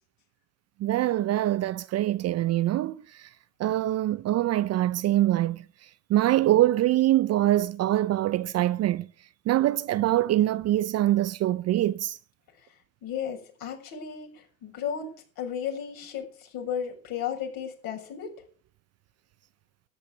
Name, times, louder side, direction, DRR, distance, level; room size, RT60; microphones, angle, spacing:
voice 1, 0.8-3.3 3.6-5.6 6.1-9.1 9.5-12.2, right 14 dB, 35° right, 0.7 m, -24 dB
voice 2, 13.0-18.3, left 8 dB, 50° left, 7.2 m, -34 dB
13.5 x 10.0 x 8.0 m
hypercardioid pair, 90°, 44 cm